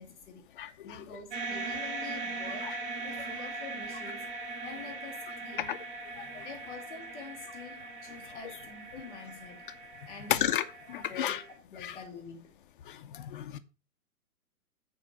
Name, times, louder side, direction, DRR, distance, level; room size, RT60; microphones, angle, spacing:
voice 1, 0.0-0.5 0.8-4.3 4.6-5.7 6.4-9.7 10.0-10.5 10.9-12.5, left 5 dB, ahead, 0.4 m, -46 dB
sound 1, 1.3-11.5, right 3 dB, 35° right, 2.8 m, -40 dB
voice 2, 10.3-10.6 11.1-11.4 11.8-12.0 12.9-13.6, left 11 dB, 35° left, 0.7 m, -31 dB
9.0 x 4.4 x 6.5 m
figure-of-eight pair, 120°, 47 cm